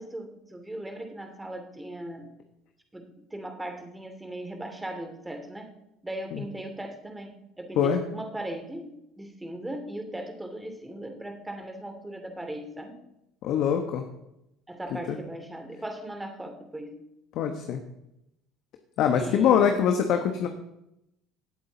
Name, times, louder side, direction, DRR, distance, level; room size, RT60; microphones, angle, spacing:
voice 1, 0.0-2.3 2.9-5.8 6.0-13.0 14.7-17.0 19.1-19.9, right 1 dB, 10° right, 5 dB, 2.6 m, -38 dB
voice 2, 13.4-14.0 15.1-15.2 17.3-17.8 19.0-20.5, left 8 dB, 60° left, 5 dB, 1.2 m, -23 dB
18.0 x 8.1 x 4.0 m, 0.84 s
hypercardioid pair, 65°, 0 cm